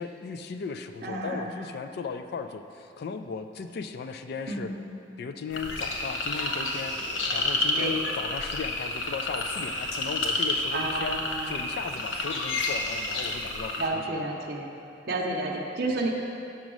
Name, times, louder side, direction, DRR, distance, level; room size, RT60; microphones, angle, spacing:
voice 1, 0.0-4.7 5.2-6.9 7.3-11.2 11.5-14.2, left 5 dB, 55° left, 8 dB, 0.3 m, -36 dB
voice 2, 1.0-1.5 4.5-4.8 7.8-8.0 10.7-11.6 13.8-14.7 15.1-16.1, right 2 dB, 55° right, -1 dB, 0.7 m, -31 dB
sound 1, 5.5-13.9, left 2 dB, 75° left, 0.8 m, -30 dB
6.1 x 5.2 x 6.1 m, 2.7 s
head